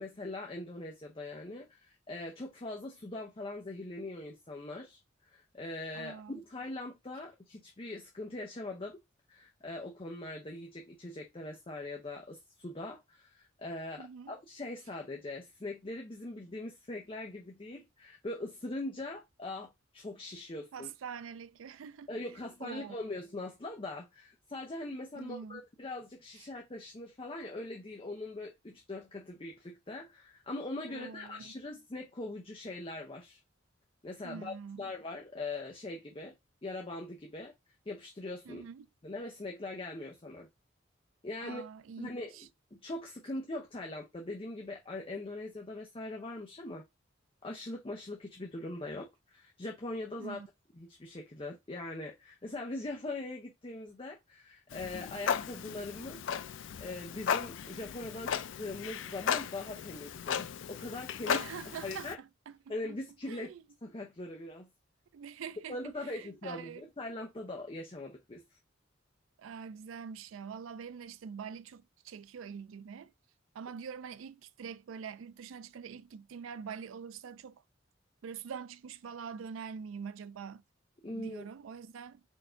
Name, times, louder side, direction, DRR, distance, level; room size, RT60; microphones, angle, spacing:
voice 1, 0.0-9.0 9.3-20.9 22.1-33.4 34.0-36.3 36.6-37.5 37.9-38.7 39.0-40.5 41.2-41.6 42.0-42.3 42.7-46.8 47.4-50.4 50.8-56.2 56.5-61.4 61.8-62.2 62.7-63.5 63.8-64.7 65.7-68.4 81.0-81.5, left 2 dB, 25° left, 0.6 m, -41 dB
voice 2, 5.9-6.4 14.0-14.4 20.7-22.1 22.6-23.0 25.2-25.6 26.3-26.5 30.9-31.6 34.2-34.9 38.5-38.9 41.4-42.5 50.2-50.5 61.3-62.7 63.3-63.6 65.1-66.9 69.4-73.1 73.5-77.6 78.2-80.6 81.1-82.2, right 6 dB, 90° right, 0.4 m, -45 dB
Clock, 54.7-62.1, left 7 dB, 70° left, 0.4 m, -36 dB
4.5 x 2.6 x 4.4 m
head